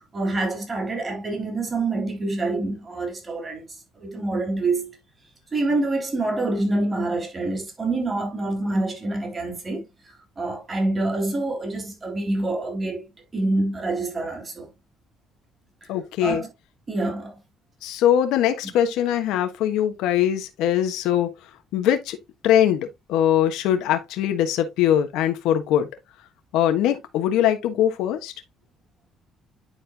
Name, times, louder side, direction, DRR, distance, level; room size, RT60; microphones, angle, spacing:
voice 1, 0.0-3.6 4.0-5.0 5.5-9.8 10.4-13.0 13.3-14.7 16.2-16.5 16.9-17.3, right 2 dB, 25° right, 3.6 m, -26 dB
voice 2, 15.9-16.4 17.8-22.2 22.4-25.9 26.5-28.3, left 10 dB, 85° left, 1.2 m, -22 dB
10.0 x 4.4 x 2.9 m
cardioid pair, 110°, 0 cm